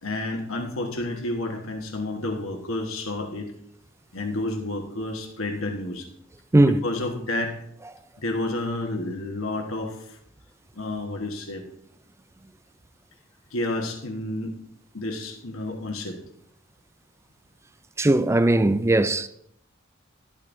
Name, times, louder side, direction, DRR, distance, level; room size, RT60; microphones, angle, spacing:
voice 1, 0.0-3.5 4.1-6.1 6.5-7.6 8.2-10.2 10.7-11.6 13.5-14.5 14.9-16.2, left 2 dB, 85° left, 1.4 m, -30 dB
voice 2, 18.0-19.3, right 2 dB, 15° right, 0.4 m, -19 dB
13.0 x 12.0 x 2.7 m
head